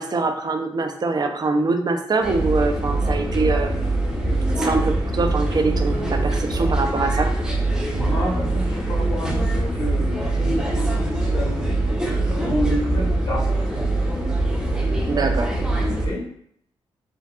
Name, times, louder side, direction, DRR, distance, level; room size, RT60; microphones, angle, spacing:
voice 1, 0.0-3.9 4.6-7.3 12.7-13.1 15.1-15.5, right 3 dB, 40° right, 5 dB, 0.5 m, -24 dB
sound 1, 2.2-16.1, right 2 dB, 5° right, 0.7 m, -23 dB
voice 2, 7.9-11.8 12.3-13.9 15.9-16.2, equal, 35° left, -5 dB, 1.4 m, -30 dB
3.4 x 2.6 x 2.3 m, 0.68 s
cardioid pair, 65°, 11 cm